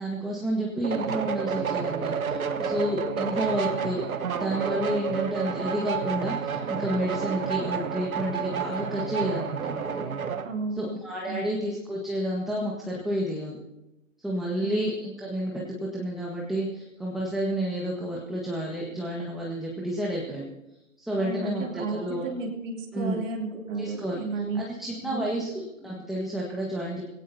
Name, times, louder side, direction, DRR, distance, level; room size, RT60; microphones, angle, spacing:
voice 1, 0.0-4.0 4.3-9.8 10.8-13.6 14.2-20.5 21.0-22.2 22.9-23.2 23.8-24.2 24.5-27.0, right 1 dB, ahead, -3 dB, 1.6 m, -30 dB
sound 1, 0.8-10.5, right 6 dB, 85° right, 1.3 m, -30 dB
voice 2, 10.4-11.0 11.3-11.4 14.6-14.9 21.2-25.3, right 3 dB, 65° right, -1 dB, 3.2 m, -33 dB
21.5 x 17.5 x 2.8 m, 0.91 s
hypercardioid pair, 140°, 41 cm